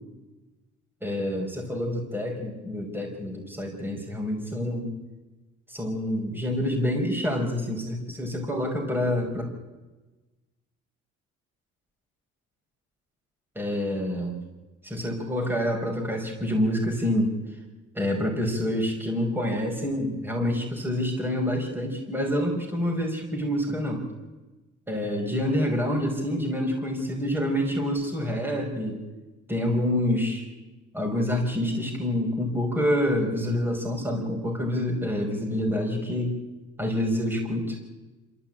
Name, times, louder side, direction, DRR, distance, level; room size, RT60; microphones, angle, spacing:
voice 1, 1.0-4.9 5.7-9.5 13.6-14.3 14.8-17.4 17.9-24.0 24.9-29.0 29.5-30.5 30.9-36.4 36.8-37.8, left 1 dB, 5° right, 0 dB, 5.4 m, -27 dB
26.5 x 14.0 x 8.9 m, 1.2 s
cardioid pair, 90°, 30 cm